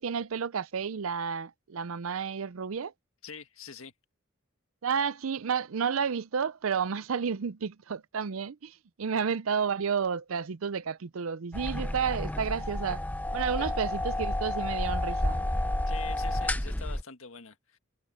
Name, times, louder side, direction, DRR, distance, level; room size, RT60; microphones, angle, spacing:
voice 1, 0.0-2.9 4.8-13.0 13.3-15.5, right 6 dB, 75° right, 0.5 m, -31 dB
voice 2, 3.2-3.9 13.6-13.7 15.9-17.8, left 5 dB, 75° left, 1.7 m, -45 dB
sound 1, 11.5-17.0, left 1 dB, 5° left, 0.6 m, -30 dB
head